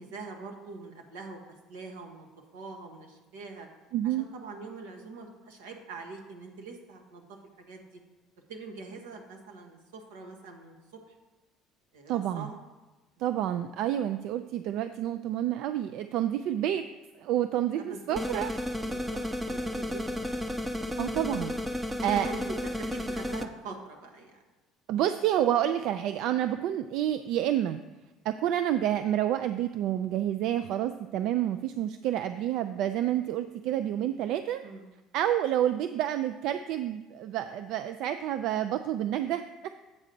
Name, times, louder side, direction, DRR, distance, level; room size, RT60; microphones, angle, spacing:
voice 1, 0.0-2.3 2.5-3.7 4.0-7.4 7.7-8.0 8.5-10.7 11.9-12.6 16.6-16.7 17.8-18.2 18.9-20.4 22.1-24.4 34.6-34.9, right 3 dB, 90° right, 2 dB, 1.2 m, -44 dB
voice 2, 3.9-4.3 12.1-12.5 13.2-16.8 17.2-18.5 21.0-21.5 22.0-22.3 24.9-27.8 28.2-34.6 35.1-39.7, right 11 dB, 65° right, 9 dB, 0.3 m, -29 dB
sound 1, 18.2-23.5, left 1 dB, 10° right, 0.6 m, -33 dB
8.3 x 3.8 x 6.7 m, 1.2 s
supercardioid pair, 85°, 0 cm